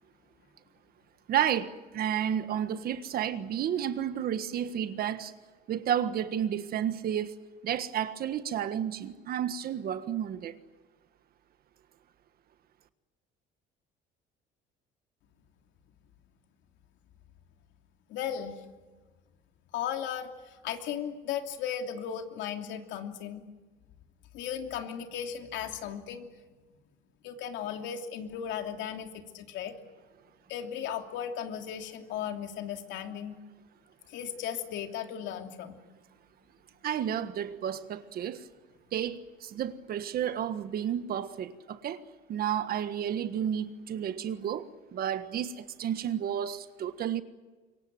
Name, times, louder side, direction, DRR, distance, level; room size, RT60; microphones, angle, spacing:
voice 1, 1.3-5.3 5.7-7.3 7.6-10.6 36.8-38.5 38.9-42.0 42.3-47.2, right 9 dB, 50° right, 1.5 m, -31 dB
voice 2, 18.1-18.6 19.7-23.4 24.3-26.3 27.2-29.7 30.5-33.4 34.1-35.8, left 9 dB, 70° left, 3.0 m, -36 dB
26.0 x 23.5 x 7.8 m
cardioid pair, 135°, 20 cm